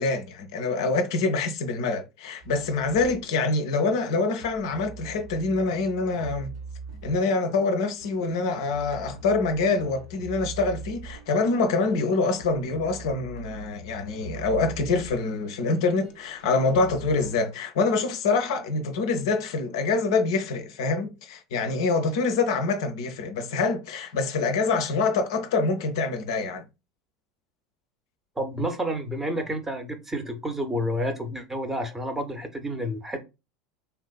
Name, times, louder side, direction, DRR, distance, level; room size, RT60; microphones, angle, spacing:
voice 1, 0.0-6.5 7.0-26.6, left 3 dB, 60° left, 0.5 m, -25 dB
sound 1, 2.4-17.3, right 4 dB, 75° right, 0.9 m, -43 dB
voice 2, 28.4-33.2, equal, 10° right, 0.7 m, -30 dB
3.4 x 2.4 x 2.3 m
figure-of-eight pair, 75°, 3 cm